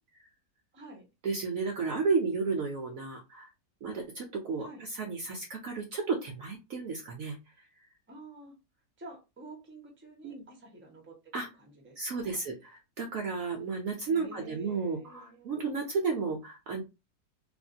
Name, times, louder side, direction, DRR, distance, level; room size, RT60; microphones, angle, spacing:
voice 1, 0.7-1.1 4.6-4.8 8.1-8.5 9.0-11.1 11.6-12.4 14.0-15.6, right 2 dB, 10° right, 0 dB, 0.7 m, -49 dB
voice 2, 1.2-3.5 3.8-7.4 10.2-10.4 11.3-11.5 12.0-16.8, right 4 dB, 65° right, 3 dB, 0.9 m, -33 dB
3.4 x 2.5 x 2.6 m, 0.26 s
omnidirectional pair, 1.9 m